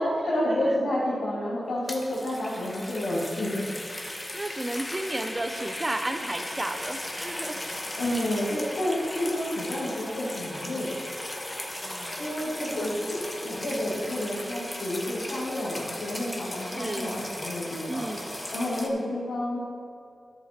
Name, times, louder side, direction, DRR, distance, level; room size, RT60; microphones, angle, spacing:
voice 1, 0.0-3.6 8.0-10.9 12.1-18.1 18.5-19.6, left 1 dB, 90° left, -11 dB, 2.4 m, -30 dB
sound 1, 1.7-18.9, left 1 dB, 25° left, 1.6 m, -37 dB
voice 2, 4.3-7.6 11.8-12.5 12.8-13.0 16.6-17.2 17.9-18.4, right 1 dB, 30° right, 7 dB, 0.9 m, -33 dB
11.0 x 7.1 x 4.5 m, 2.5 s
cardioid pair, 45°, 0 cm